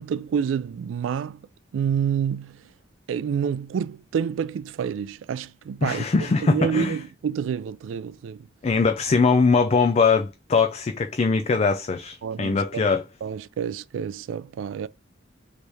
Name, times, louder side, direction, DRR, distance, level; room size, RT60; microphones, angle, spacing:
voice 1, 0.0-1.4 1.7-2.6 3.1-8.5 12.2-12.9 13.2-14.9, right 7 dB, 85° right, 0.3 m, -28 dB
voice 2, 5.8-7.0 8.6-13.1, left 4 dB, 35° left, 0.3 m, -21 dB
3.4 x 3.2 x 4.0 m
head